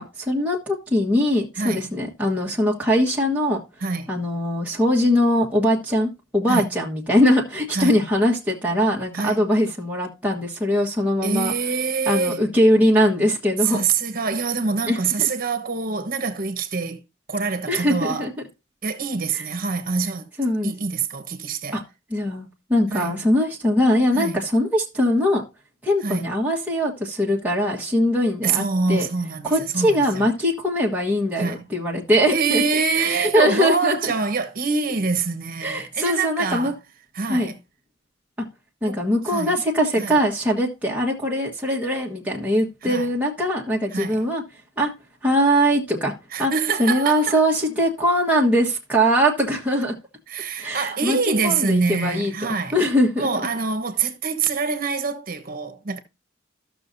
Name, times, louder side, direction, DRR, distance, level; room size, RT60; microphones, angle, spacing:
voice 1, 0.0-3.6 4.1-11.5 12.1-13.9 14.9-15.0 17.7-18.3 20.4-20.7 21.7-21.8 22.1-25.4 25.8-29.1 29.4-32.6 33.0-34.1 35.6-36.7 37.3-37.5 38.8-44.4 44.8-44.9 45.2-46.1 46.4-46.5 46.8-49.9 50.6-51.2 51.4-53.3, equal, 10° right, 1.5 m, -21 dB
voice 2, 1.6-1.9 3.8-4.1 6.5-6.7 7.7-8.0 9.1-9.4 11.2-12.4 13.6-17.0 17.3-18.3 18.8-20.3 20.6-21.8 22.9-23.2 24.1-24.4 26.0-26.3 28.4-30.3 31.4-31.7 32.3-36.7 37.1-37.6 38.8-39.0 39.3-39.5 40.0-40.1 42.8-43.1 43.9-44.2 46.3-47.5 50.3-52.8 53.2-56.0, right 4 dB, 50° right, 1.2 m, -25 dB
14.5 x 6.3 x 2.7 m
head